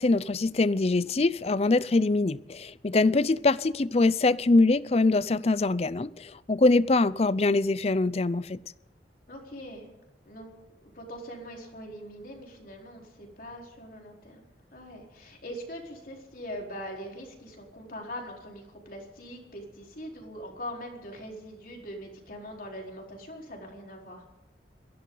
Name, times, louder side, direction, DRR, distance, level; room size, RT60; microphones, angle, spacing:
voice 1, 0.0-8.6, left 3 dB, 35° left, 0.5 m, -23 dB
voice 2, 9.3-9.9 10.3-10.5 10.8-24.2, equal, 50° left, 4.3 m, -42 dB
22.5 x 16.0 x 4.0 m
head